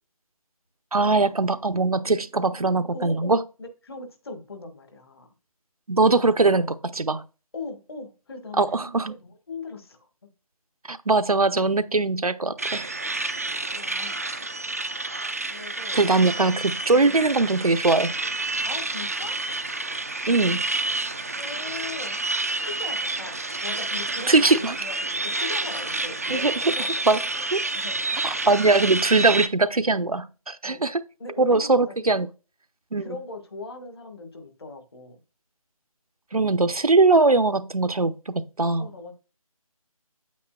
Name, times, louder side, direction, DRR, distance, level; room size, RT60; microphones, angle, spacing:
voice 1, 0.9-3.4 5.9-7.2 8.6-9.1 10.9-12.9 15.9-18.1 20.3-20.6 24.3-24.8 26.3-26.5 27.1-27.2 27.5-27.6 28.2-31.0 31.4-32.3 32.9-33.1 36.3-38.9, right 3 dB, 75° right, 0.8 m, -21 dB
voice 2, 2.9-5.3 7.5-10.1 13.7-14.4 15.5-16.0 16.9-17.3 18.7-19.4 21.4-22.2 22.7-23.3 23.6-27.5 27.7-28.3 30.6-30.8 31.2-32.0 33.0-35.2 38.8-39.1, left 3 dB, 40° left, 1.7 m, -39 dB
sound 1, 12.6-29.5, right 2 dB, 25° right, 0.4 m, -29 dB
8.5 x 8.4 x 2.3 m
figure-of-eight pair, 155°, 19 cm